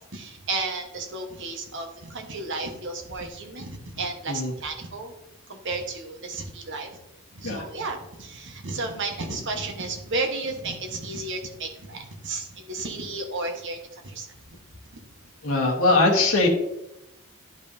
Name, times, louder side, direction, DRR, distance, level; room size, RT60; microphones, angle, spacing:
voice 1, 0.0-5.1 5.5-6.9 7.3-14.6, right 3 dB, 60° right, 3 dB, 1.2 m, -33 dB
voice 2, 15.4-16.5, left 2 dB, 85° left, -1 dB, 1.2 m, -21 dB
11.0 x 5.3 x 2.7 m, 0.89 s
head